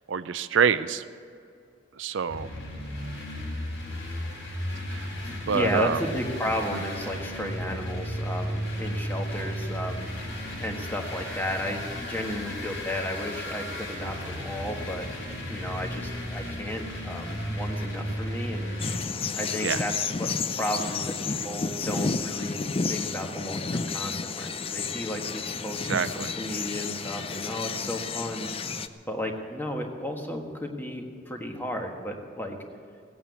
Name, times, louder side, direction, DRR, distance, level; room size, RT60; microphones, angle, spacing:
voice 1, 0.1-1.0 2.0-2.5 4.9-5.1 5.5-6.0 19.6-19.8 25.9-26.3, right 6 dB, 75° right, 13 dB, 0.5 m, -26 dB
sound 1, 2.3-19.0, equal, 85° left, 4.0 m, -34 dB
voice 2, 5.2-10.1 10.6-15.0 15.5-18.8 19.3-20.3 20.6-22.6 22.9-28.5 29.1-32.6, left 1 dB, 10° left, 2 dB, 1.4 m, -33 dB
sound 2, 18.8-28.9, left 4 dB, 30° left, 0.5 m, -31 dB
17.0 x 8.7 x 8.4 m, 2.4 s
head